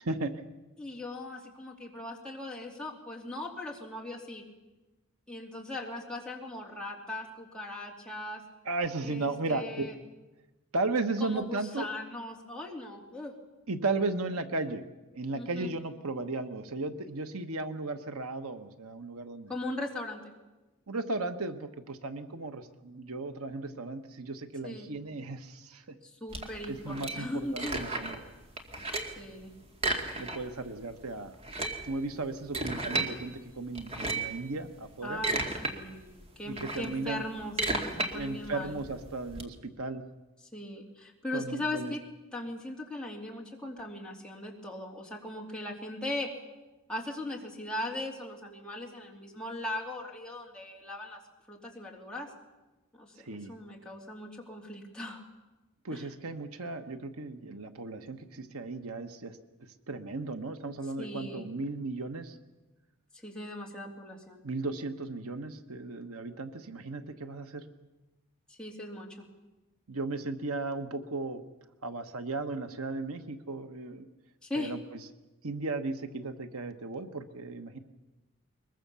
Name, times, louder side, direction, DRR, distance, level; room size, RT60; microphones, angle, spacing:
voice 1, 0.0-0.4 8.6-9.8 10.7-11.9 13.7-14.8 15.1-19.5 20.9-26.0 26.7-28.2 30.2-31.4 31.8-35.2 36.4-37.2 38.1-40.0 41.3-41.9 53.2-53.5 55.8-59.4 59.9-62.4 64.4-67.6 69.9-71.4 71.8-74.1 74.5-74.8 75.4-77.8, right 3 dB, 85° right, 8 dB, 1.3 m, -35 dB
voice 2, 0.8-4.4 5.3-8.4 9.0-10.0 11.2-13.3 15.3-15.7 19.5-20.2 24.6-24.9 26.0-27.8 29.2-29.5 35.0-38.8 40.5-42.0 42.3-46.3 46.9-51.2 51.5-52.3 52.9-55.2 55.9-56.0 61.0-61.5 63.1-64.4 68.5-69.3 74.4-74.7, left 1 dB, 5° left, -1 dB, 2.9 m, -39 dB
sound 1, 26.3-28.3 28.6-29.2 29.7-30.7 30.9-31.0 31.3-33.1 33.8-34.4 34.9-35.7 36.1-39.4, right 2 dB, 30° right, 2.2 m, -33 dB
22.5 x 21.5 x 7.0 m, 1.1 s
head